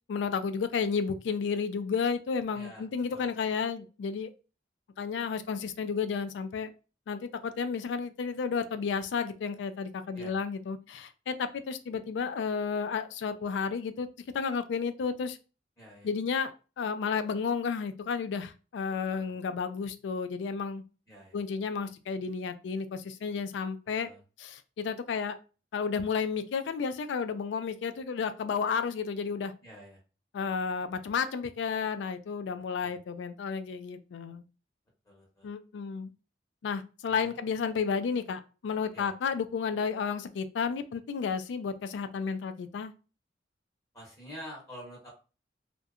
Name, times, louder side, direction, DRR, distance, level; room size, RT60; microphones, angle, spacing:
voice 1, 0.1-4.3 5.0-6.7 7.1-14.1 14.3-15.4 16.0-20.8 21.3-24.1 24.4-25.4 25.7-29.5 30.3-34.4 35.4-36.1 36.6-42.9, left 5 dB, 80° left, 10 dB, 0.3 m, -32 dB
voice 2, 2.5-3.3 10.1-10.3 15.8-16.1 19.1-19.3 21.1-21.4 24.0-24.2 29.6-30.0 32.8-33.0 35.1-35.5 37.1-37.4 38.9-39.1 43.9-45.1, equal, 20° left, -3 dB, 0.7 m, -48 dB
2.7 x 2.1 x 2.4 m, 0.34 s
head